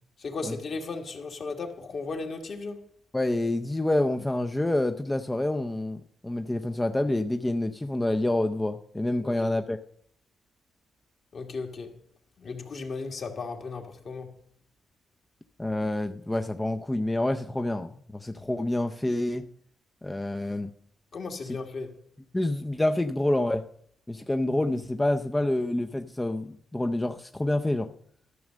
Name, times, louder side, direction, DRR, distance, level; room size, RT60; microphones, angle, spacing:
voice 1, 0.2-2.8 9.2-9.5 11.3-11.9 12.4-14.3 21.1-21.9, left 4 dB, 55° left, 1.9 m, -35 dB
voice 2, 3.1-9.8 15.6-19.5 20.0-20.7 21.4-21.6 22.3-23.6 24.1-27.9, left 1 dB, 15° left, 0.5 m, -27 dB
12.5 x 6.3 x 6.3 m
cardioid pair, 85°, 0 cm